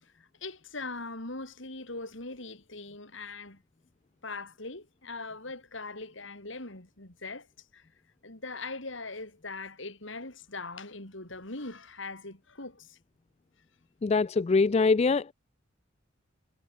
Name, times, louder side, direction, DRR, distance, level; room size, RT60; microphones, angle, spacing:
voice 1, 0.0-3.6 4.2-7.5 7.7-7.9 8.2-13.0, left 3 dB, 70° left, 4.7 m, -41 dB
voice 2, 14.0-15.3, left 4 dB, 30° left, 0.3 m, -23 dB
head